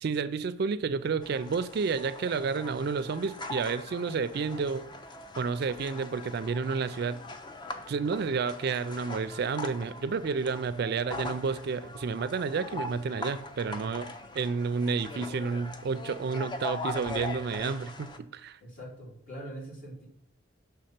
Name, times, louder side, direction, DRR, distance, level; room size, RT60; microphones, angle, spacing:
voice 1, 0.0-4.8 5.4-7.2 7.9-18.6, right 5 dB, 55° right, 13 dB, 0.4 m, -30 dB
sound 1, 1.2-18.2, left 2 dB, 25° left, 0.5 m, -41 dB
voice 2, 18.6-20.1, right 1 dB, 45° left, -5 dB, 2.7 m, -42 dB
6.5 x 3.5 x 5.8 m, 0.67 s
head